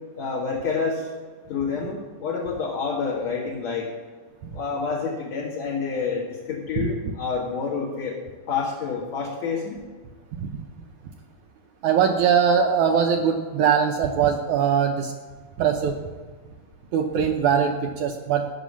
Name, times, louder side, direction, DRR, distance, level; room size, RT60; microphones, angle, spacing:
voice 1, 0.1-1.1 1.5-3.9 4.5-8.1 8.5-9.8, left 5 dB, 55° left, -4 dB, 2.7 m, -28 dB
voice 2, 11.8-15.1 15.6-16.0 16.9-18.6, right 7 dB, 75° right, 4 dB, 1.8 m, -21 dB
17.5 x 6.3 x 7.3 m, 1.5 s
omnidirectional pair, 4.4 m